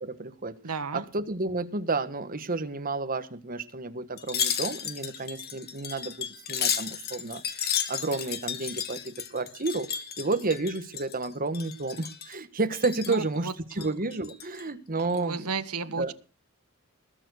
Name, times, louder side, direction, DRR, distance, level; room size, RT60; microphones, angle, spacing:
voice 1, 0.0-0.6 0.9-9.9 10.2-13.5 13.7-15.5 15.9-16.1, right 3 dB, 40° right, 1.4 m, -31 dB
voice 2, 0.6-1.1 13.1-13.9 15.1-16.1, right 4 dB, 90° right, 1.3 m, -33 dB
Wind chime, 4.2-11.3 11.5-12.4 12.7-13.3 13.7-14.6 15.0-15.2, left 8 dB, 45° left, 1.7 m, -33 dB
20.5 x 7.2 x 6.3 m
head